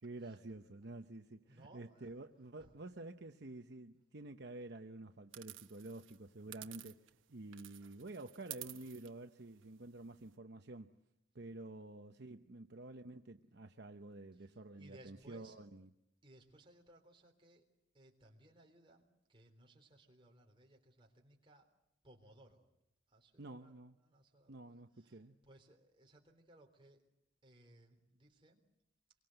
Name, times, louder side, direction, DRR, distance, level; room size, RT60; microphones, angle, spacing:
voice 1, 0.0-10.9 11.3-15.9 23.4-24.0 24.5-25.3, right 2 dB, 60° right, 0.9 m, -50 dB
voice 2, 1.5-2.1 2.6-2.7 14.3-15.6 16.2-17.6 17.9-21.7 22.0-22.7 23.1-23.7 24.0-27.0 27.4-28.6, right 1 dB, 25° right, 3.7 m, -63 dB
sound 1, 5.3-7.2 7.5-10.3, right 15 dB, 85° right, 1.1 m, -53 dB
26.5 x 23.5 x 7.9 m
head